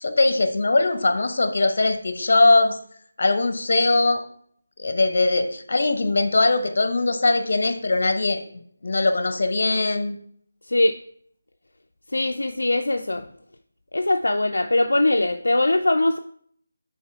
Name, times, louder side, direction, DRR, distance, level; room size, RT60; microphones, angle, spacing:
voice 1, 0.0-2.8 3.2-4.2 4.8-8.4 8.8-10.2, left 2 dB, 60° left, 8 dB, 0.9 m, -21 dB
voice 2, 10.7-11.0 12.1-13.3 13.9-16.2, left 2 dB, 85° left, 5 dB, 0.4 m, -21 dB
5.6 x 4.1 x 4.6 m, 0.62 s
figure-of-eight pair, 165°, 0 cm